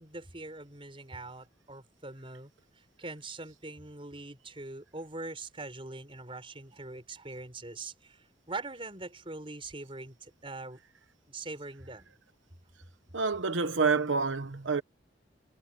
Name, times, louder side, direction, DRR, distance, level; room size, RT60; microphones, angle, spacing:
voice 1, 0.0-2.5 3.0-10.8 11.3-12.1, right 2 dB, 30° right, 5.2 m, -42 dB
voice 2, 13.1-14.8, right 4 dB, 85° right, 1.1 m, -28 dB
head